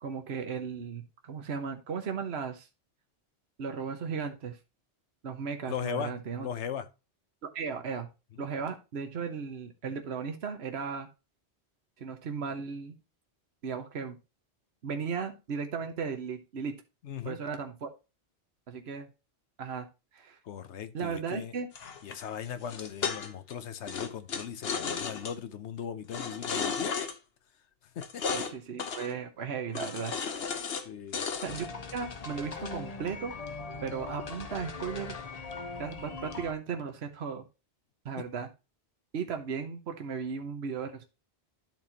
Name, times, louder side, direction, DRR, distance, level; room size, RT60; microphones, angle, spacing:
voice 1, 0.0-2.7 3.6-4.6 5.2-6.5 7.4-8.1 8.4-11.1 12.0-12.9 13.6-14.2 14.8-16.7 17.2-17.9 18.7-19.1 19.6-19.8 20.1-20.4 20.9-21.7 26.6-26.7 28.3-30.1 31.4-31.7 31.9-33.3 33.8-35.2 35.8-37.4 38.0-38.5 39.1-41.0, right 6 dB, 65° right, 1.3 m, -36 dB
voice 2, 5.6-6.9 8.4-8.5 17.0-17.4 20.4-21.5 22.0-27.1 27.9-28.4 30.8-31.2 38.2-38.3, left 8 dB, 85° left, 1.1 m, -38 dB
sound 1, 21.7-23.5 23.9-25.3 26.1-27.1 28.0-28.5 28.8-29.1 29.7-30.8 31.1-32.0, left 6 dB, 60° left, 1.1 m, -34 dB
sound 2, 31.5-36.5, left 4 dB, 40° left, 0.8 m, -40 dB
12.0 x 4.2 x 2.9 m
omnidirectional pair, 1.2 m